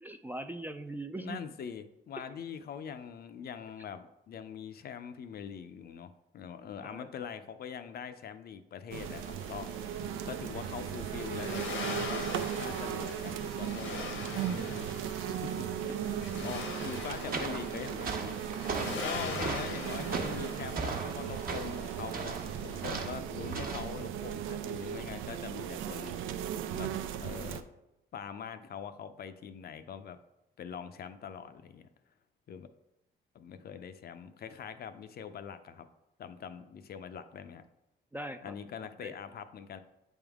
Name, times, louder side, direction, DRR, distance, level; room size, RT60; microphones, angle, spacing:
voice 1, 0.0-1.4 2.2-2.3 6.8-7.1 16.3-16.4 19.3-19.5 38.1-38.6 39.0-39.1, right 1 dB, 10° right, 7 dB, 0.3 m, -41 dB
voice 2, 1.2-9.7 10.2-11.7 12.0-18.4 19.0-26.2 26.7-27.6 28.1-30.2 30.6-31.9 32.5-32.7 33.3-35.9 36.2-37.6 38.4-39.8, left 7 dB, 50° left, 10 dB, 0.5 m, -43 dB
sound 1, 8.9-27.6, right 9 dB, 90° right, 0.4 m, -37 dB
Accelerating revving vroom, 9.0-23.0, left 4 dB, 85° left, 1.1 m, -43 dB
sound 2, 17.1-24.0, right 4 dB, 45° right, 0.9 m, -39 dB
8.1 x 3.6 x 3.5 m, 0.91 s
cardioid pair, 90°, 20 cm